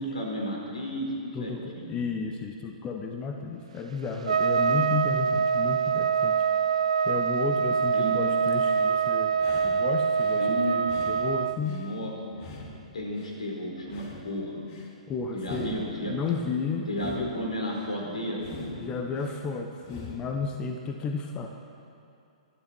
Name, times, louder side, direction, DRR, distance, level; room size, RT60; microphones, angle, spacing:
voice 1, 0.0-2.0 7.9-8.2 10.3-10.8 11.6-12.1 12.9-14.6 15.3-16.1 16.9-18.9, equal, 75° left, -1 dB, 4.5 m, -33 dB
voice 2, 1.3-6.5 7.0-9.3 9.6-11.8 15.1-15.8 16.1-17.3 18.8-21.5, left 5 dB, 25° left, 4 dB, 1.1 m, -33 dB
Trumpet, 4.3-11.6, right 6 dB, 70° right, 0.6 m, -25 dB
sound 1, 8.5-8.9 9.3-10.4 10.8-11.9 12.3-13.4 13.8-14.9 15.4-16.5 16.9-17.9 18.3-19.4 19.8-20.4, left 3 dB, 45° left, 2.5 m, -45 dB
25.0 x 12.0 x 4.6 m, 2.6 s
figure-of-eight pair, 120°, 4 cm